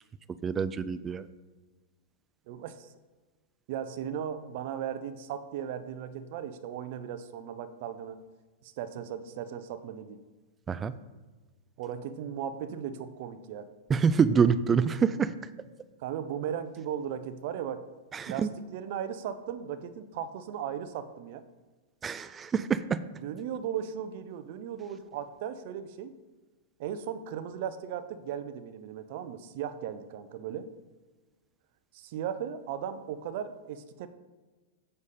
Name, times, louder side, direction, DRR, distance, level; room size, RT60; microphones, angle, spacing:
voice 1, 0.4-1.3 10.7-10.9 13.9-15.3 18.1-18.5 22.0-23.0, right 6 dB, 15° right, 15 dB, 0.3 m, -26 dB
voice 2, 2.5-2.9 3.7-8.2 8.6-10.2 11.8-13.7 16.0-17.9 18.3-21.4 23.2-26.1 26.8-30.7 31.9-34.1, right 9 dB, 55° right, 12 dB, 0.6 m, -37 dB
7.1 x 6.5 x 4.1 m, 1.3 s
hypercardioid pair, 145°, 0 cm